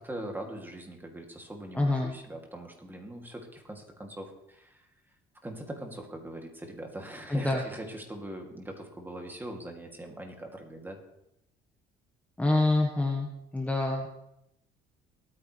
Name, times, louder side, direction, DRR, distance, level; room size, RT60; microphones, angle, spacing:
voice 1, 0.0-4.9 5.4-11.0, right 1 dB, 10° right, 2 dB, 2.8 m, -41 dB
voice 2, 1.7-2.1 7.3-7.6 12.4-14.1, left 2 dB, 10° left, 0 dB, 1.5 m, -26 dB
23.0 x 9.6 x 3.4 m, 0.83 s
cardioid pair, 110°, 17 cm